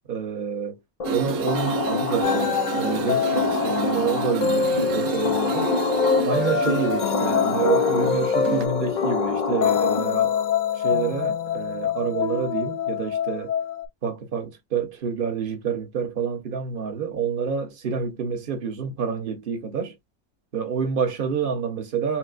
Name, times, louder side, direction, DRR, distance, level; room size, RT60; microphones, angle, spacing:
voice 1, 0.1-0.8 1.1-5.7 6.2-10.4 10.7-13.5 14.0-20.0 20.5-22.2, right 6 dB, 40° right, 1.1 m, -28 dB
sound 1, 1.0-10.4, left 4 dB, 40° left, 0.6 m, -28 dB
sound 2, 1.0-8.7, right 9 dB, 85° right, 1.1 m, -30 dB
sound 3, 2.2-13.9, left 7 dB, 85° left, 0.4 m, -25 dB
5.7 x 2.1 x 2.5 m
omnidirectional pair, 1.5 m